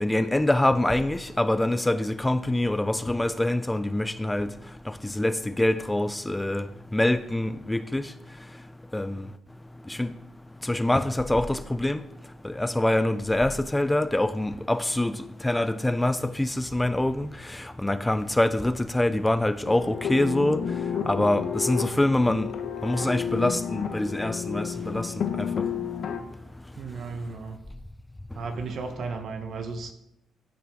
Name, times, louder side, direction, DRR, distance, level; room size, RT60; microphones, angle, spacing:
voice 1, 0.0-4.5 4.9-6.7 6.9-8.0 8.9-9.3 9.9-10.1 10.6-12.0 12.4-20.6 21.1-22.5 22.8-25.5, left 1 dB, 10° left, 0.4 m, -25 dB
sound 1, 19.7-26.2, left 7 dB, 60° left, 1.0 m, -31 dB
voice 2, 26.8-27.6 28.3-29.9, right 4 dB, 60° right, 1.2 m, -34 dB
14.0 x 6.0 x 3.8 m
cardioid pair, 90°, 0 cm